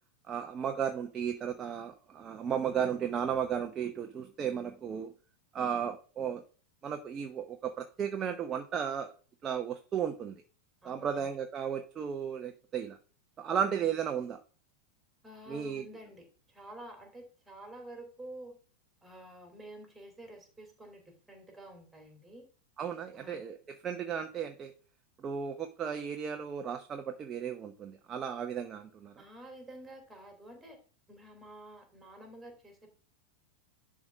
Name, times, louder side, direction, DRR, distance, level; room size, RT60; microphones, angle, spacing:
voice 1, 0.3-5.1 5.5-6.4 6.8-9.1 9.4-10.4 10.8-13.0 13.4-14.4 15.5-15.8 22.8-23.6 23.8-24.7 25.2-29.1, right 8 dB, 25° right, 6 dB, 0.8 m, -34 dB
voice 2, 10.8-11.3 13.6-13.9 15.2-16.2 16.5-18.5 19.0-21.0 21.3-22.4 23.1-23.4 29.2-30.8 31.1-32.9, right 1 dB, 5° right, 4 dB, 3.0 m, -49 dB
11.0 x 3.7 x 5.2 m, 0.38 s
figure-of-eight pair, 90°, 0 cm